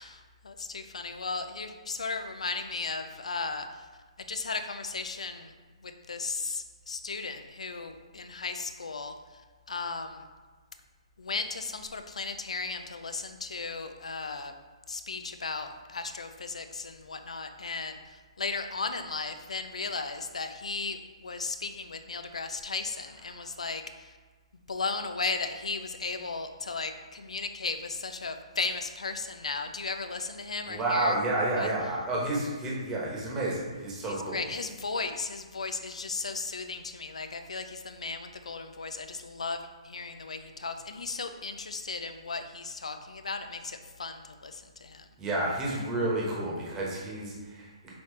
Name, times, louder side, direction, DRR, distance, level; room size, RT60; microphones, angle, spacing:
voice 1, 0.0-3.9 4.3-5.5 5.8-9.4 9.7-10.3 11.2-14.5 14.9-24.1 24.7-31.2 31.6-31.7 34.0-45.1, left 4 dB, 90° left, 8 dB, 0.4 m, -36 dB
voice 2, 23.1-23.5 30.6-34.5 45.2-47.9, right 2 dB, 15° right, -4 dB, 1.2 m, -30 dB
5.5 x 2.8 x 3.2 m, 1.4 s
hypercardioid pair, 145°, 3 cm